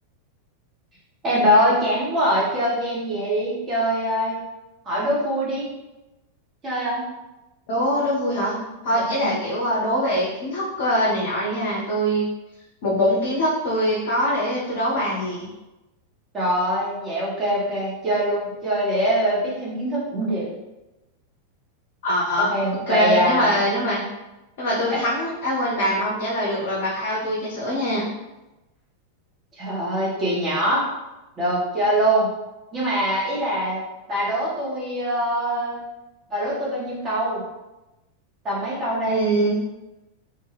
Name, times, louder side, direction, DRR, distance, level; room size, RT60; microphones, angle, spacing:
voice 1, 1.2-4.4 4.8-5.7 6.6-7.0 8.9-9.3 16.3-20.5 22.4-23.5 29.6-30.9 31.4-32.3 32.7-33.8 34.1-35.8 36.3-37.4 38.4-39.2, equal, 25° right, -6 dB, 1.0 m, -23 dB
voice 2, 7.7-8.6 8.8-12.3 12.8-15.5 22.0-22.5 22.9-24.0 24.6-28.0 39.1-39.6, equal, 50° left, -6 dB, 0.6 m, -23 dB
2.3 x 2.2 x 3.3 m, 1.0 s
figure-of-eight pair, 90°, 0 cm